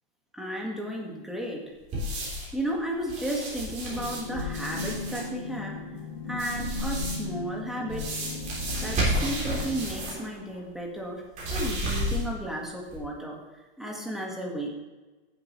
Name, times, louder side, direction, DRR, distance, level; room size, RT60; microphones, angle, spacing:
voice 1, 0.3-1.6 2.5-5.8 6.3-8.1 8.8-11.2 11.5-13.4 13.8-14.7, right 1 dB, ahead, -2 dB, 1.5 m, -33 dB
sound 1, 1.9-2.6 3.0-5.3 6.3-7.4 7.9-10.3 10.5-10.6 11.3-12.4 12.9-13.0, equal, 25° right, 3.3 m, -31 dB
sound 2, 3.9-10.3, left 3 dB, 60° left, 2.2 m, -37 dB
15.0 x 7.9 x 3.1 m, 1.2 s
supercardioid pair, 160°, 30 cm